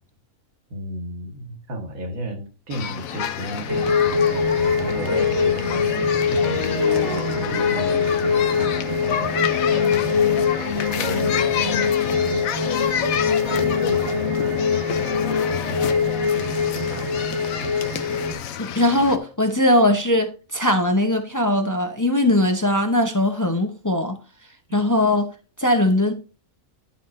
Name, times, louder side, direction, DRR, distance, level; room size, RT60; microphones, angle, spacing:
voice 1, 0.7-12.4 13.5-15.8 16.3-17.3, equal, 75° right, 2.0 m, -33 dB
sound 1, 2.7-19.2, left 9 dB, 80° left, 1.1 m, -29 dB
sound 2, 3.7-18.3, left 5 dB, 15° right, 1.4 m, -23 dB
sound 3, 4.8-17.0, left 8 dB, 60° left, 1.4 m, -32 dB
voice 2, 18.6-24.2 24.7-25.3 25.6-26.1, left 1 dB, 20° left, 0.5 m, -20 dB
11.0 x 5.7 x 2.6 m
omnidirectional pair, 1.5 m